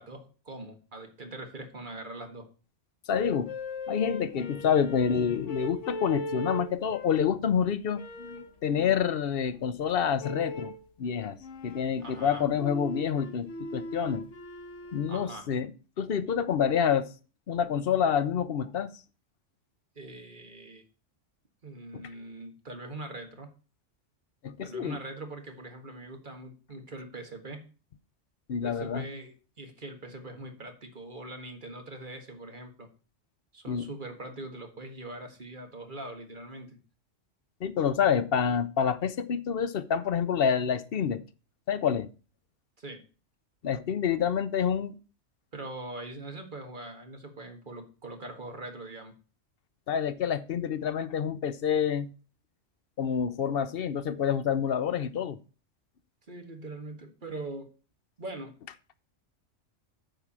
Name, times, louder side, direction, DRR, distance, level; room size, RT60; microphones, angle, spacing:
voice 1, 0.0-2.5 12.0-12.5 15.1-15.5 19.9-20.8 21.6-23.5 24.6-27.7 28.6-32.9 33.5-36.8 42.8-43.0 45.5-49.1 56.3-57.7 58.2-58.5, right 2 dB, 40° right, 1.8 m, -42 dB
sound 1, 3.1-7.4 7.9-8.6 10.2-10.8 11.4-15.4, left 1 dB, 80° left, 1.4 m, -39 dB
voice 2, 3.1-3.5 3.9-10.7 11.0-11.4 11.6-14.2 14.9-15.7 16.0-17.1 17.5-18.9 21.9-22.0 24.4-25.0 28.5-29.1 33.7-33.9 37.6-41.2 41.7-42.1 43.6-44.9 49.9-52.1 53.0-55.4, left 7 dB, 55° left, 0.8 m, -28 dB
9.1 x 4.8 x 7.3 m
omnidirectional pair, 1.3 m